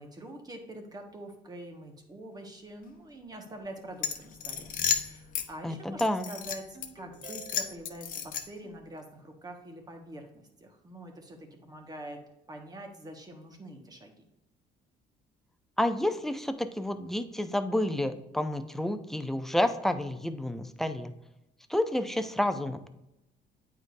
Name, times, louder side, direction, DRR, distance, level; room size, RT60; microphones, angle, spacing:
voice 1, 0.0-12.2 12.5-14.3, right 1 dB, 25° right, 3 dB, 1.5 m, -45 dB
sound 1, 4.0-5.5 6.0-6.9 7.2-8.7, left 7 dB, 55° left, 0.9 m, -33 dB
voice 2, 5.6-6.3 15.8-21.1 21.7-22.9, left 1 dB, ahead, 9 dB, 0.5 m, -30 dB
Ringtone, 6.7-7.9, right 5 dB, 40° right, 2.4 m, -49 dB
8.8 x 4.8 x 2.6 m, 0.89 s
cardioid pair, 110°, 17 cm